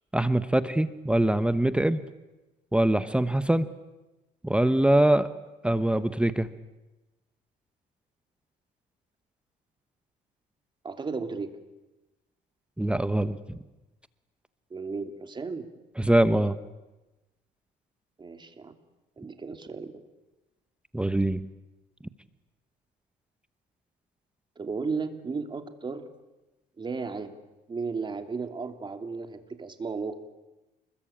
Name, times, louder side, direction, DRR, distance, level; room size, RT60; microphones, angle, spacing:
voice 1, 0.1-2.0 2.7-3.7 4.4-5.3 5.6-6.5 12.8-13.6 16.0-16.5 20.9-21.4, right 1 dB, 5° right, 12 dB, 1.0 m, -23 dB
voice 2, 10.8-11.5 14.7-15.6 18.2-18.7 19.2-19.9 24.6-26.1 26.8-27.3 27.7-30.1, right 4 dB, 25° right, 7 dB, 2.9 m, -34 dB
29.0 x 21.5 x 8.8 m, 1.0 s
cardioid pair, 110°, 17 cm